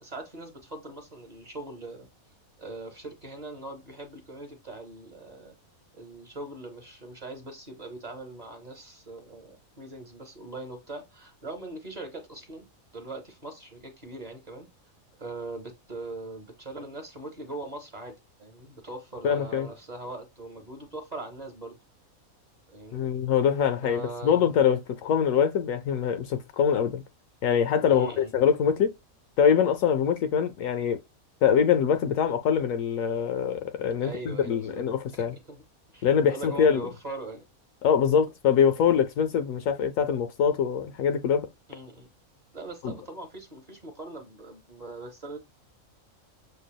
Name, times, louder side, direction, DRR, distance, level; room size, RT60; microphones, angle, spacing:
voice 1, 0.0-2.1 2.6-5.5 5.9-14.7 15.2-21.8 22.7-23.1 23.8-24.5 27.9-28.3 34.0-34.8 35.1-35.6 35.9-37.4 41.7-42.1 42.5-45.4, right 2 dB, 35° right, 0.9 m, -41 dB
voice 2, 19.2-19.7 22.9-27.0 27.4-28.9 29.4-31.0 31.4-35.3 36.0-36.8 37.8-41.5 42.8-42.9, left 7 dB, 70° left, 1.0 m, -24 dB
6.7 x 2.3 x 2.2 m
omnidirectional pair, 1.5 m